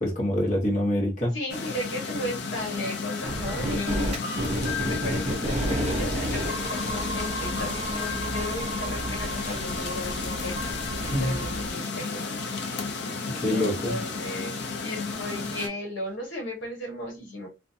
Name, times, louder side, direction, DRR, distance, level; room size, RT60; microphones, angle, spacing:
voice 1, 0.0-1.4 11.0-11.4 13.3-14.0, left 1 dB, 40° left, 0.9 m, -25 dB
voice 2, 1.3-4.1 4.8-10.6 11.0-12.3 13.5-17.5, left 1 dB, 80° left, 1.0 m, -35 dB
sound 1, 1.5-15.7, left 4 dB, 60° left, 0.4 m, -32 dB
sound 2, 3.3-11.7, right 1 dB, 35° right, 0.5 m, -31 dB
2.4 x 2.1 x 2.6 m
head